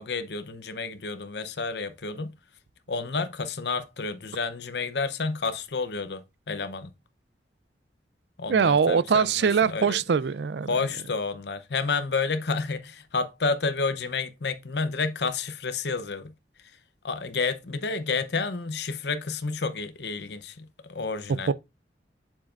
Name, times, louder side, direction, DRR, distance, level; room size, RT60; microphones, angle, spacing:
voice 1, 0.0-2.3 2.9-6.9 8.4-10.0 10.7-16.3 17.0-21.5, left 4 dB, 70° left, 0.8 m, -30 dB
voice 2, 8.5-10.7 21.5-21.6, right 6 dB, 70° right, 0.4 m, -22 dB
7.4 x 7.2 x 2.5 m
head